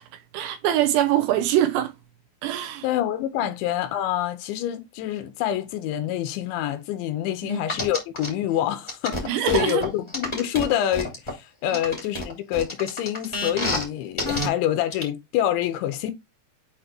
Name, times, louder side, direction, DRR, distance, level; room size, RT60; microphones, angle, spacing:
voice 1, 0.3-1.9 2.4-2.8 7.4-7.6 9.3-9.8, right 12 dB, 80° right, 2.7 m, -23 dB
voice 2, 2.8-16.1, left 11 dB, 80° left, 3.0 m, -26 dB
sound 1, 7.7-8.3 8.9-11.3 11.7-13.8 14.2-14.5 14.9-15.0, left 1 dB, 25° left, 0.5 m, -28 dB
8.1 x 3.1 x 4.3 m
omnidirectional pair, 5.3 m